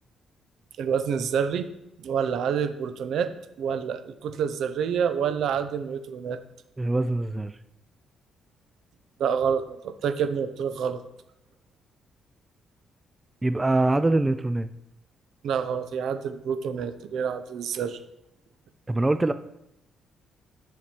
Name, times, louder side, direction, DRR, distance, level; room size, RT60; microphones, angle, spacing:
voice 1, 0.8-1.7 2.0-6.4 9.2-11.0 15.4-18.0, right 7 dB, 75° right, 10 dB, 0.7 m, -28 dB
voice 2, 6.8-7.5 13.4-14.7 18.9-19.3, right 2 dB, 15° right, 11 dB, 0.3 m, -23 dB
7.1 x 6.0 x 4.5 m, 0.84 s
cardioid pair, 90°, 0 cm